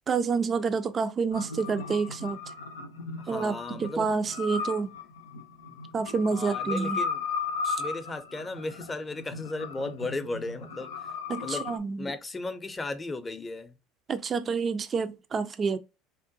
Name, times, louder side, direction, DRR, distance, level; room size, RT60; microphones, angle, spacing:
voice 1, 0.1-2.4 3.3-4.9 5.9-7.0 7.6-7.8 11.3-12.0 14.1-15.8, right 5 dB, 35° right, 0.4 m, -28 dB
sound 1, 1.3-11.8, left 5 dB, 85° left, 0.5 m, -36 dB
voice 2, 3.2-4.1 6.3-7.2 7.8-11.1 11.4-11.7 12.0-13.7, left 2 dB, 20° left, 0.6 m, -35 dB
3.6 x 2.2 x 2.6 m
hypercardioid pair, 75°, 0 cm